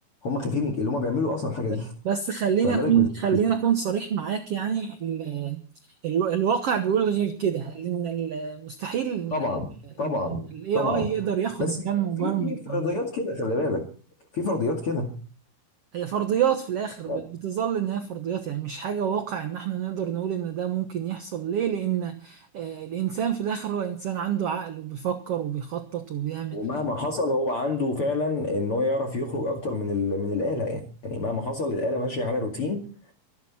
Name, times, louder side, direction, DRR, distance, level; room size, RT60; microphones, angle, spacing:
voice 1, 0.2-1.9 2.6-3.1 9.3-9.7 10.0-10.4 10.7-11.1 11.6-11.8 12.2-13.8 14.3-15.1 17.1-17.2 26.5-32.8, left 2 dB, 40° left, 5 dB, 2.6 m, -27 dB
voice 2, 2.0-5.6 6.0-9.5 10.0-12.8 15.9-26.6, right 8 dB, 65° right, 7 dB, 1.5 m, -27 dB
25.0 x 10.5 x 4.3 m, 0.40 s
omnidirectional pair, 4.3 m